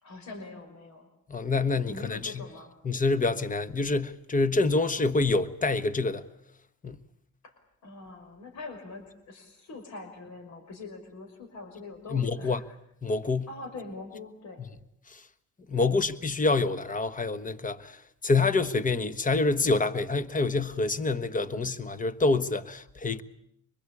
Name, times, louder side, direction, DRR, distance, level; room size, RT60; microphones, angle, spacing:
voice 1, 0.0-1.1 1.9-2.7 7.4-12.7 13.5-14.7 15.8-16.0, left 3 dB, 70° left, 5.6 m, -43 dB
voice 2, 1.3-2.4 2.8-6.2 6.8-7.0 12.1-12.6 13.0-13.5 15.1-15.2 15.7-23.2, left 3 dB, 25° left, 1.4 m, -27 dB
25.5 x 21.5 x 8.5 m
cardioid pair, 90°, 30 cm